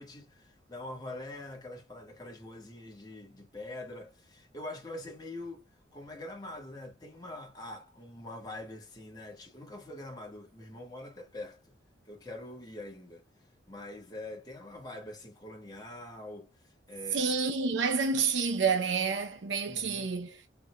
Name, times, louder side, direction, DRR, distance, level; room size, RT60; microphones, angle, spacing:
voice 1, 0.0-11.7 12.0-17.4 19.6-20.1, left 1 dB, 20° left, 1.5 m, -44 dB
voice 2, 17.1-20.4, right 5 dB, 75° right, 0.6 m, -29 dB
4.5 x 3.8 x 2.2 m
head